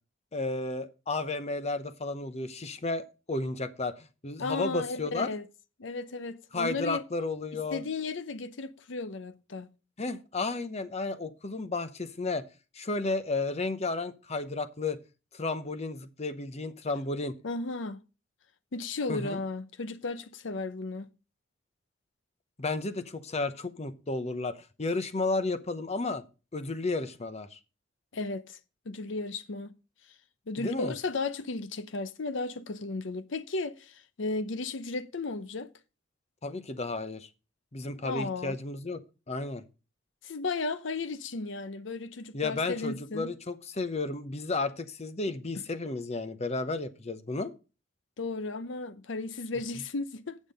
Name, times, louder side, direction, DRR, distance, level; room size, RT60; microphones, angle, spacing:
voice 1, 0.3-5.3 6.5-7.8 10.0-12.5 12.7-15.0 15.3-17.4 19.1-19.4 22.6-26.2 26.5-27.6 30.6-30.9 36.4-37.3 37.7-39.0 39.3-39.6 42.3-47.5, left 3 dB, 35° left, 0.8 m, -33 dB
voice 2, 4.4-5.4 5.8-7.0 7.7-9.7 17.4-18.0 18.7-21.1 28.1-28.6 28.9-29.7 30.5-35.7 38.0-38.6 40.2-43.3 48.2-50.4, left 3 dB, 70° left, 0.7 m, -34 dB
8.5 x 7.3 x 5.2 m
head